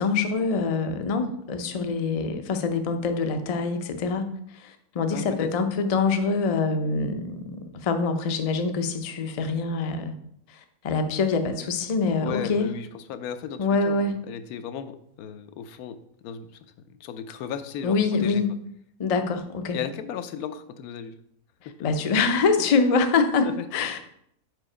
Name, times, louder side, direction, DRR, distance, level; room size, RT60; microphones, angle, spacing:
voice 1, 0.0-7.6 7.8-10.1 10.8-12.7 13.6-14.2 17.8-18.5 19.0-19.8 21.8-24.0, left 4 dB, 70° left, 7 dB, 0.3 m, -25 dB
voice 2, 5.1-5.5 12.2-16.0 16.2-16.5 16.9-18.4 19.7-21.2 23.4-23.7, left 8 dB, 90° left, 11 dB, 1.1 m, -35 dB
4.9 x 4.7 x 4.9 m, 0.71 s
omnidirectional pair, 1.5 m